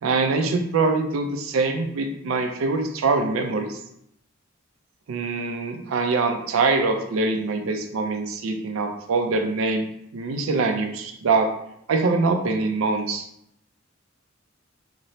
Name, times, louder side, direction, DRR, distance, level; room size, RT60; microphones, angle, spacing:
voice 1, 0.0-3.8 5.1-9.9 10.1-11.5 11.9-13.2, right 3 dB, 80° right, 5 dB, 0.4 m, -23 dB
2.9 x 2.0 x 2.6 m, 0.75 s
head